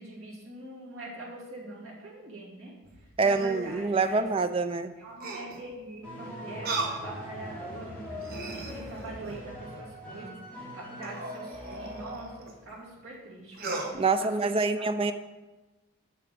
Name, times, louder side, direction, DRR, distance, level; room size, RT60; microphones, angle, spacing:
voice 1, 0.0-2.7 3.2-4.3 5.0-6.7 7.0-10.3 10.7-12.3 12.6-14.5 14.8-14.9, right 2 dB, 75° right, -5 dB, 2.8 m, -43 dB
sound 1, 2.8-4.2 5.2-5.7 6.6-7.0 7.6-7.7 8.1-9.5 11.0-12.5 13.5-13.9, right 2 dB, 45° right, 1.1 m, -37 dB
voice 2, 3.2-4.9 13.9-15.1, right 4 dB, 25° right, 10 dB, 0.4 m, -26 dB
sound 2, 6.0-12.5, equal, 10° left, 2.5 m, -42 dB
7.2 x 6.9 x 5.0 m, 1.2 s
head